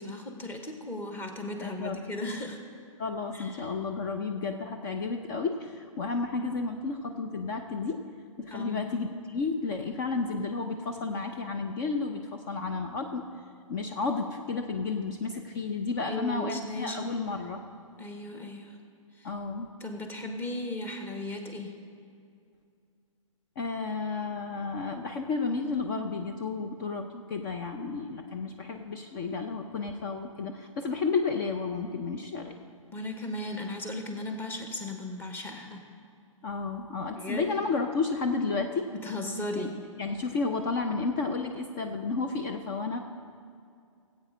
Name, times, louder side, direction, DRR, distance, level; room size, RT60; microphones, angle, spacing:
voice 1, 0.0-2.6 3.3-3.7 8.5-8.9 16.1-17.1 18.0-18.8 19.2-19.3 19.8-21.7 32.9-35.8 37.2-37.5 39.0-39.8, left 1 dB, 10° left, 4 dB, 1.1 m, -36 dB
voice 2, 1.6-2.0 3.0-8.0 8.4-13.2 13.7-17.6 19.2-19.7 23.6-32.5 36.4-38.9 39.5-39.7 40.0-43.0, left 4 dB, 40° left, 5 dB, 0.8 m, -32 dB
16.5 x 8.4 x 5.1 m, 2.4 s
hypercardioid pair, 135°, 17 cm